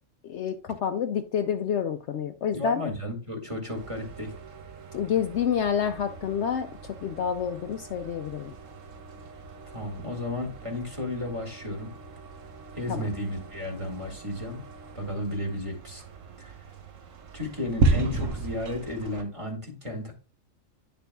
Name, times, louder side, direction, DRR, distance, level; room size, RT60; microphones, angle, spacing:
voice 1, 0.2-2.9 4.9-8.5 12.9-13.1, left 8 dB, 65° left, 8 dB, 0.8 m, -28 dB
voice 2, 2.5-4.3 9.7-11.9 12.8-14.6 15.0-16.0 16.4-16.6 17.3-20.1, left 1 dB, 25° right, 0 dB, 2.2 m, -33 dB
sound 1, 3.7-19.2, right 3 dB, 75° right, 1.4 m, -35 dB
9.9 x 6.8 x 2.3 m, 0.33 s
omnidirectional pair, 1.4 m